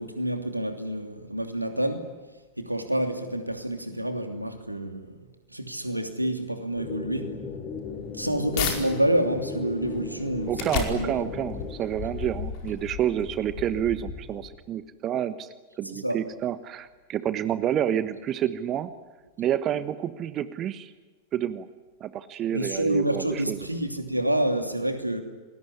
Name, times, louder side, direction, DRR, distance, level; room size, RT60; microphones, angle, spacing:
voice 1, 0.0-2.1 2.6-5.2 5.5-7.3 8.1-11.3 15.8-16.2 22.5-25.2, right 1 dB, 85° right, 6 dB, 2.8 m, -28 dB
sound 1, 6.7-11.8, left 4 dB, 30° left, 4.3 m, -36 dB
sound 2, 7.6-8.8 9.3-14.6, left 7 dB, 45° left, 5.0 m, -35 dB
voice 2, 10.5-15.5 15.8-18.9 19.4-20.9 21.3-21.7 22.0-23.6, right 10 dB, 30° right, 13 dB, 1.2 m, -29 dB
28.0 x 20.5 x 9.9 m, 1.3 s
figure-of-eight pair, 90°, 0 cm